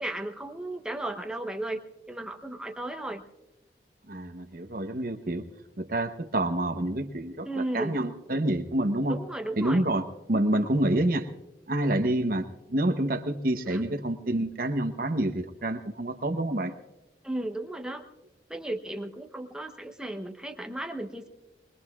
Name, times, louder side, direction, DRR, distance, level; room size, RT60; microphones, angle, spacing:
voice 1, 0.0-1.8 2.1-3.2 7.5-8.0 9.1-9.8 13.7-14.0 17.2-18.0 18.5-21.3, right 1 dB, 5° right, 4 dB, 0.9 m, -35 dB
voice 2, 4.1-5.4 5.8-9.2 9.6-11.3 11.7-16.7, right 1 dB, 55° right, 6 dB, 0.9 m, -28 dB
23.5 x 21.0 x 2.4 m, 0.99 s
head